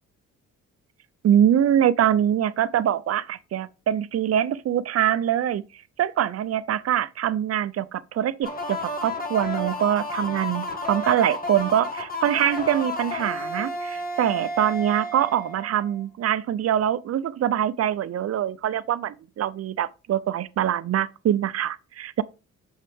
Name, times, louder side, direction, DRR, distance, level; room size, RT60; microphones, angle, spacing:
voice 1, 1.2-5.6 6.0-22.2, right 10 dB, 55° right, 0.6 m, -24 dB
sound 1, 8.4-16.0, left 1 dB, 30° left, 1.8 m, -32 dB
6.6 x 5.5 x 3.6 m
cardioid pair, 90°, 30 cm